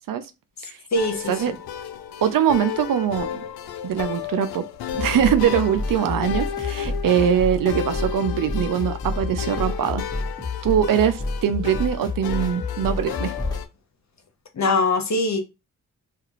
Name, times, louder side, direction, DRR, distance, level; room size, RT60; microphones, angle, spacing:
sound 1, 0.9-13.7, left 9 dB, 75° left, 0.5 m, -33 dB
voice 1, 0.9-1.5 14.6-15.4, left 2 dB, 45° left, 0.9 m, -22 dB
voice 2, 2.2-3.4 3.8-4.6 5.0-10.0 10.6-13.3, right 9 dB, 60° right, 0.6 m, -22 dB
sound 2, 4.9-13.7, left 3 dB, 10° left, 1.1 m, -29 dB
2.4 x 2.3 x 3.0 m
supercardioid pair, 40°, 38 cm